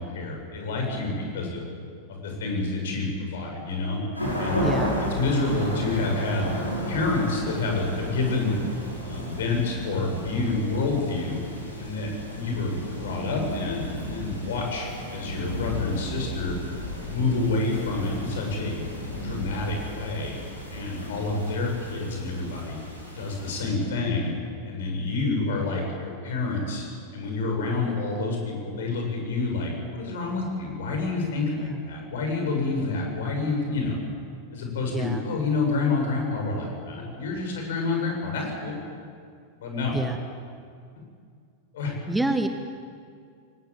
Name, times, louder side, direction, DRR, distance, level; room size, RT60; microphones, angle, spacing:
voice 1, 0.0-1.6 2.1-4.0 4.4-4.6 5.2-6.5 6.9-8.5 9.0-11.5 11.8-16.6 17.0-18.9 19.2-20.4 20.7-22.8 23.1-24.3 24.6-26.8 27.1-34.0 34.5-38.8 39.6-39.9 41.7-41.9, left 3 dB, 60° left, 1 dB, 7.2 m, -28 dB
sound 1, 4.1-23.6, equal, 85° left, 5.9 m, -33 dB
voice 2, 4.6-5.0 31.5-31.8 34.9-35.3 39.9-40.2 42.1-42.5, right 2 dB, 5° right, 7 dB, 1.3 m, -27 dB
24.0 x 18.5 x 9.0 m, 2.2 s
figure-of-eight pair, 90°, 0 cm